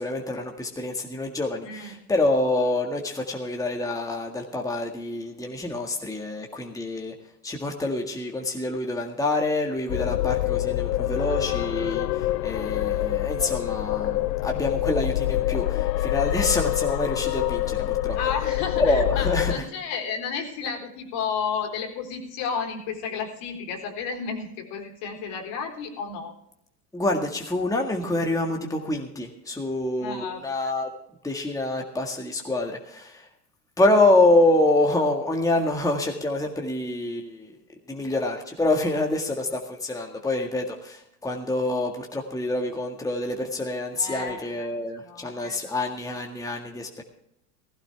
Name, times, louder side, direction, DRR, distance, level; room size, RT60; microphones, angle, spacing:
voice 1, 0.0-7.1 7.4-18.2 18.8-19.6 26.9-30.9 31.2-33.3 33.8-37.6 37.9-47.0, left 2 dB, 5° left, 2 dB, 1.8 m, -26 dB
sound 1, 9.9-19.6, left 15 dB, 90° left, 0.6 m, -26 dB
voice 2, 18.1-26.3 30.0-30.4 43.9-44.7 45.0-45.7, left 6 dB, 60° left, 3 dB, 4.0 m, -32 dB
16.0 x 16.0 x 3.5 m, 0.77 s
hypercardioid pair, 95°, 48 cm